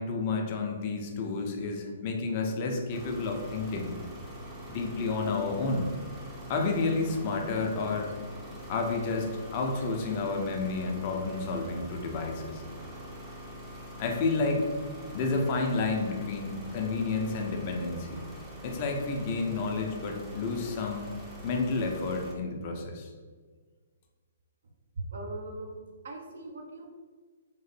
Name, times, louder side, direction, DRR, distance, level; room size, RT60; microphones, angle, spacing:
voice 1, 0.0-3.9 4.7-5.9 6.5-8.1 8.7-12.6 14.0-14.7 15.1-18.2 18.6-23.1, left 3 dB, 40° left, 2 dB, 0.4 m, -30 dB
sound 1, 2.9-22.3, equal, 15° right, 0.5 m, -44 dB
voice 2, 24.9-25.8 26.0-26.9, right 2 dB, 65° right, 1 dB, 0.5 m, -39 dB
2.9 x 2.0 x 3.1 m, 1.5 s
figure-of-eight pair, 125°, 0 cm